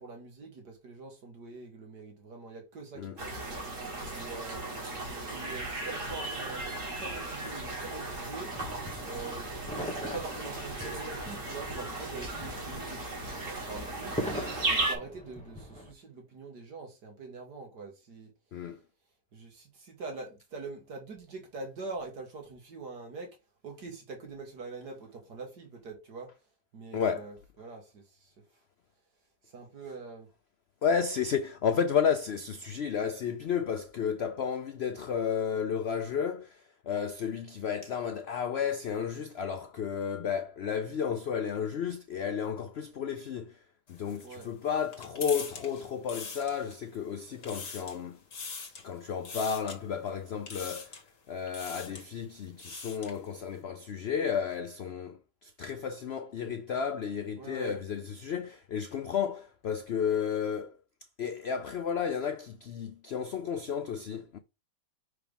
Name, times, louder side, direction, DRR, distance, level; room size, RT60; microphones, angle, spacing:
voice 1, 0.0-3.4 4.1-4.6 5.1-8.5 9.0-9.5 10.0-13.0 13.3-14.2 14.7-18.3 19.3-23.4 23.6-26.3 26.7-28.4 29.4-30.3 44.2-44.5 57.4-57.8, right 3 dB, 70° right, 2.1 m, -44 dB
sound 1, 3.2-14.9, right 2 dB, 45° right, 2.6 m, -36 dB
sound 2, 8.5-15.9, equal, 5° left, 1.0 m, -41 dB
voice 2, 26.9-27.3 30.8-43.6 43.9-48.2 48.8-51.0 51.3-60.8 61.2-64.4, left 7 dB, 85° left, 0.5 m, -32 dB
sound 3, 43.9-47.0 47.3-48.0 48.3-48.9 49.2-49.8 50.5-51.1 51.5-52.1 52.4-53.2, left 5 dB, 50° left, 1.8 m, -42 dB
5.9 x 4.7 x 3.4 m
omnidirectional pair, 1.8 m